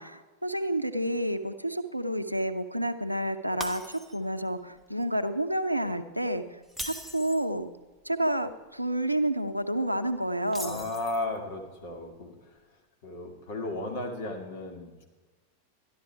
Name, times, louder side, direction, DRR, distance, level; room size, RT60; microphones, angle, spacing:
voice 1, 0.0-7.7 8.0-10.9, right 1 dB, 90° right, 10 dB, 0.7 m, -30 dB
Shatter, 3.6-4.4 4.8-5.0 6.6-7.5 10.5-11.4, equal, 5° left, 1.3 m, -40 dB
voice 2, 10.6-12.3 13.0-15.0, left 2 dB, 50° left, 2 dB, 2.2 m, -35 dB
13.0 x 11.0 x 4.6 m, 1.3 s
figure-of-eight pair, 90°, 0 cm